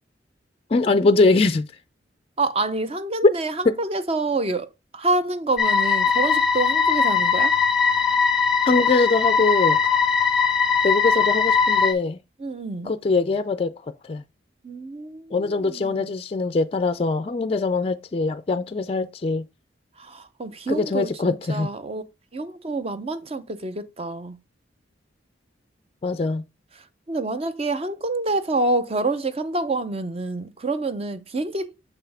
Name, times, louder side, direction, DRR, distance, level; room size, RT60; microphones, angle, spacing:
voice 1, 0.7-1.7 3.7-3.8 8.7-9.8 10.8-12.2 12.8-14.2 15.3-19.5 20.7-21.7 26.0-26.4, left 3 dB, 30° left, 0.4 m, -22 dB
voice 2, 2.4-7.5 12.4-12.9 14.6-16.1 20.0-22.0 22.3-24.4 27.1-31.7, right 2 dB, 30° right, 0.6 m, -27 dB
sound 1, 5.6-11.9, left 5 dB, ahead, 1.2 m, -20 dB
7.0 x 5.8 x 3.4 m
head